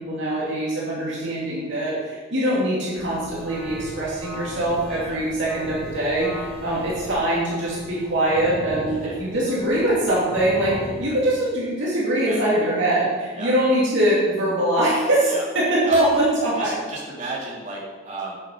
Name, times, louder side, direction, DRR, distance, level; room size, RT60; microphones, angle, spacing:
voice 1, 0.1-16.8, right 1 dB, 60° right, -7 dB, 2.7 m, -23 dB
sound 1, 3.0-11.1, equal, ahead, 2.1 m, -37 dB
voice 2, 8.9-9.2 12.2-12.7 13.3-13.5 15.3-15.5 15.8-16.0 16.5-18.3, right 3 dB, 35° right, -6 dB, 3.4 m, -35 dB
8.4 x 8.4 x 5.4 m, 1.5 s
head